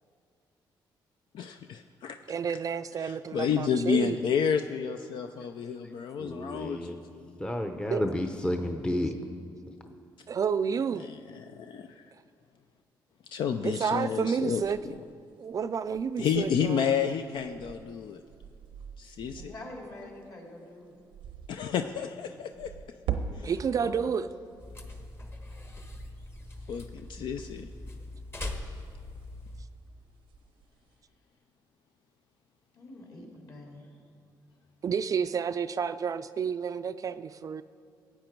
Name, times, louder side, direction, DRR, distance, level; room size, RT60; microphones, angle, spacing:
voice 1, 1.3-2.2 3.0-7.3 11.0-11.9 13.3-14.6 16.2-18.2 19.0-19.5 21.5-22.7 23.4-23.5 26.7-27.7, left 7 dB, 70° left, 7 dB, 0.5 m, -30 dB
voice 2, 2.3-4.2 7.9-8.1 10.3-11.1 13.6-14.8 15.4-16.9 23.4-24.2 34.8-37.6, right 6 dB, 45° right, 12 dB, 0.3 m, -30 dB
voice 3, 5.4-7.0 7.4-9.2, left 1 dB, 10° left, 5 dB, 0.7 m, -32 dB
sound 1, 14.6-20.2 20.8-21.5 22.4-25.2 25.5-28.0 28.2-29.8 30.2-30.9, right 7 dB, 90° right, 0.7 m, -42 dB
voice 4, 19.3-21.0 23.3-24.0 32.7-33.9, left 2 dB, 50° left, -1 dB, 3.1 m, -46 dB
sound 2, 24.6-29.7, left 2 dB, 30° left, 1.3 m, -41 dB
15.5 x 8.8 x 4.6 m, 2.3 s
cardioid pair, 95°, 8 cm